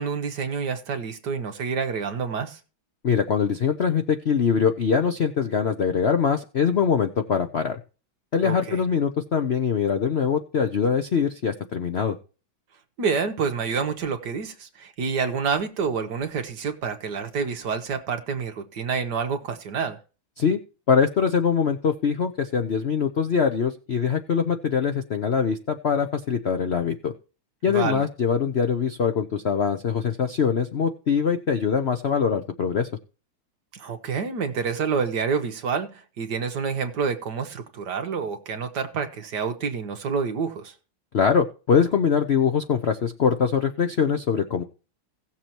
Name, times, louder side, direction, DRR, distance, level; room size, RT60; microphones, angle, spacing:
voice 1, 0.0-2.6 8.4-8.8 13.0-20.0 27.7-28.1 33.7-40.7, right 5 dB, 60° right, 1.7 m, -28 dB
voice 2, 3.0-7.8 8.3-12.2 20.4-20.6 20.9-27.1 27.6-32.9 41.1-44.6, left 6 dB, 90° left, 0.5 m, -23 dB
17.0 x 7.3 x 2.9 m
omnidirectional pair, 2.3 m